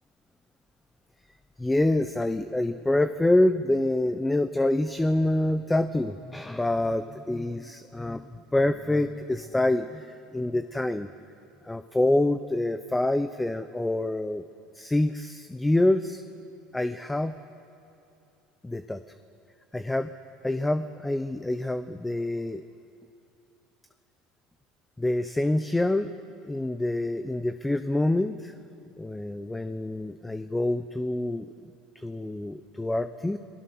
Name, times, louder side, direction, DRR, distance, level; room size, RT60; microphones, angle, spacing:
voice 1, 1.6-8.2 8.5-11.1 11.7-14.4 14.7-16.2 16.7-17.4 18.6-19.0 19.7-20.1 20.4-22.6 25.0-26.1 26.4-28.5 29.0-33.4, left 1 dB, 10° left, 10 dB, 0.7 m, -26 dB
29.5 x 20.0 x 6.2 m, 2.7 s
supercardioid pair, 120°, 0 cm